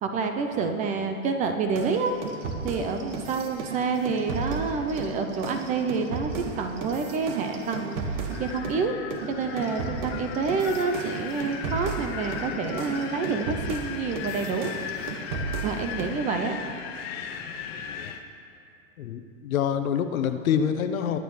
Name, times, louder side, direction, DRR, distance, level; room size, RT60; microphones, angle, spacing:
voice 1, 0.0-2.1 2.6-9.0 9.3-14.7 15.6-16.6, right 4 dB, 20° right, 6 dB, 0.5 m, -28 dB
sound 1, 1.7-8.8 9.1-16.2, right 4 dB, 60° right, 1.6 m, -34 dB
Wind, 8.3-18.2, left 7 dB, 45° left, 0.9 m, -37 dB
voice 2, 19.0-21.2, left 8 dB, 75° left, 8 dB, 0.9 m, -26 dB
21.0 x 9.1 x 3.2 m, 2.6 s
hypercardioid pair, 130°, 42 cm